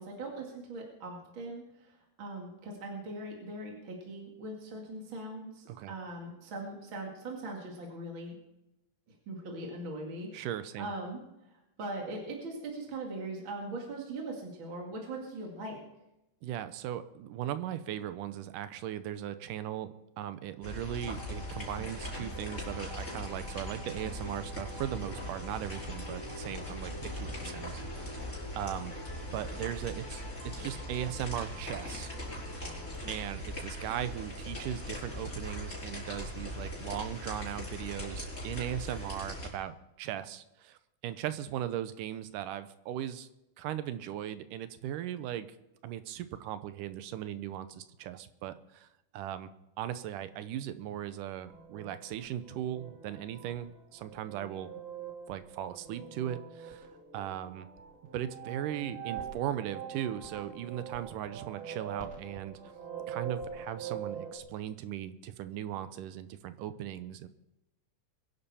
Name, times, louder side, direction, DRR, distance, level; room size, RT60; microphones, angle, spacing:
voice 1, 0.0-8.4 9.3-10.5 10.8-11.2 11.5-15.8, right 2 dB, 40° right, -1 dB, 2.6 m, -40 dB
voice 2, 10.3-10.9 16.4-28.2 28.5-29.0 29.2-32.1 32.6-32.8 33.1-40.8 41.0-43.3 43.6-45.5 45.8-48.9 49.1-49.5 49.8-54.7 55.3-56.9 57.1-57.7 58.1-62.6 63.1-67.3, right 11 dB, 80° right, 12 dB, 2.3 m, -38 dB
sound 1, 20.6-39.5, left 1 dB, 20° left, 5.7 m, -40 dB
sound 2, 20.9-33.1, left 1 dB, 10° right, 2.9 m, -48 dB
sound 3, 51.4-64.4, right 7 dB, 25° right, 2.7 m, -44 dB
22.5 x 11.0 x 4.3 m, 0.91 s
omnidirectional pair, 3.7 m